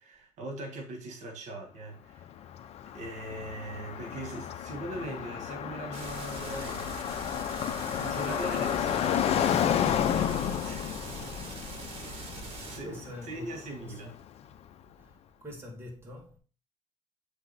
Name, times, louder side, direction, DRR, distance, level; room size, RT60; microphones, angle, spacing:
voice 1, 0.0-2.3 2.9-7.0 8.0-11.3 11.9-12.1 12.4-14.1, right 2 dB, 70° right, 1.6 m, -41 dB
Car passing by, 2.2-14.2, left 9 dB, 55° left, 0.6 m, -31 dB
sound 1, 5.9-12.8, right 2 dB, 50° right, 2.0 m, -42 dB
voice 2, 12.6-14.2 15.0-16.4, left 1 dB, 20° right, 2.5 m, -45 dB
7.9 x 3.5 x 4.0 m
cardioid pair, 105°, 13 cm